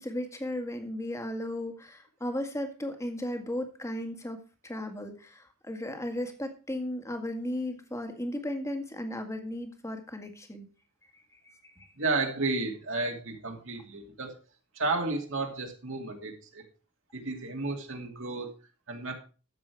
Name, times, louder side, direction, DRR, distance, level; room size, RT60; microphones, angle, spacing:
voice 1, 0.0-10.7 11.3-11.9, left 1 dB, 15° left, 6 dB, 1.8 m, -35 dB
voice 2, 12.0-14.3 14.7-16.6 17.1-18.5 18.9-19.1, right 3 dB, 60° right, 2 dB, 2.6 m, -32 dB
13.5 x 7.9 x 4.7 m, 0.34 s
head